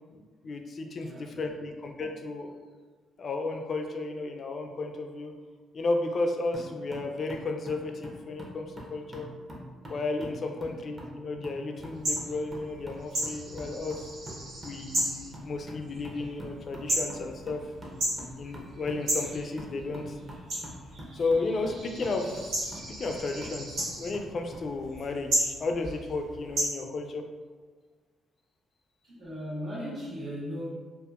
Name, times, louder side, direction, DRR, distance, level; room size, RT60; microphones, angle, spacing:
voice 1, 0.1-2.5 3.2-5.3 5.7-9.3 9.9-14.1 14.6-17.6 18.4-20.2 21.1-27.2, left 3 dB, 50° left, 4 dB, 0.3 m, -33 dB
voice 2, 1.0-1.6 10.5-10.8 29.0-30.7, equal, 65° right, -14 dB, 1.2 m, -38 dB
sound 1, 6.5-24.7, equal, 25° right, 0.6 m, -46 dB
sound 2, 11.7-26.7, right 1 dB, 85° right, 1.0 m, -35 dB
2.6 x 2.4 x 2.4 m, 1.4 s
cardioid pair, 90°, 0 cm